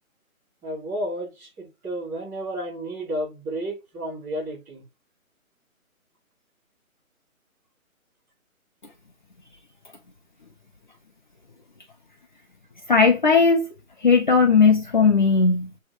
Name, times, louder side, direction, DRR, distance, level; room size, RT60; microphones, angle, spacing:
voice 1, 0.6-4.8, right 1 dB, 5° right, 3.5 m, -32 dB
voice 2, 12.9-13.7 14.0-15.8, left 5 dB, 35° left, 0.9 m, -17 dB
9.6 x 3.4 x 4.9 m
hypercardioid pair, 170°, 42 cm